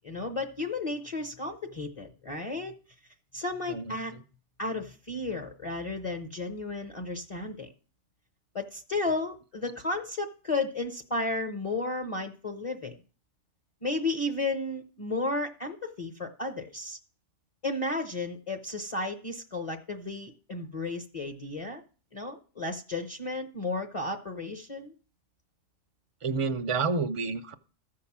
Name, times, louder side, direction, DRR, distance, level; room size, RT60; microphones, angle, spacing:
voice 1, 0.0-2.7 3.3-4.1 4.6-7.7 8.5-12.9 13.8-17.0 17.6-21.8 22.1-24.9, left 2 dB, 30° left, 6 dB, 0.9 m, -33 dB
voice 2, 26.2-27.5, right 4 dB, 35° right, 9 dB, 0.6 m, -29 dB
13.5 x 4.8 x 7.2 m, 0.38 s
omnidirectional pair, 1.2 m